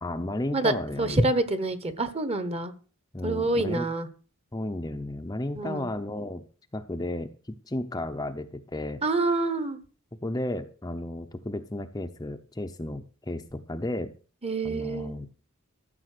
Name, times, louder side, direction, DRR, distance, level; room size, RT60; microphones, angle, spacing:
voice 1, 0.0-1.3 3.1-3.9 4.5-6.4 6.7-9.0 10.2-14.1 14.6-15.3, left 1 dB, 15° left, 6 dB, 0.7 m, -33 dB
voice 2, 1.0-2.7 3.2-4.1 5.5-5.9 9.0-9.8 14.4-15.2, right 2 dB, 30° right, 12 dB, 1.2 m, -26 dB
14.0 x 7.0 x 6.6 m, 0.38 s
head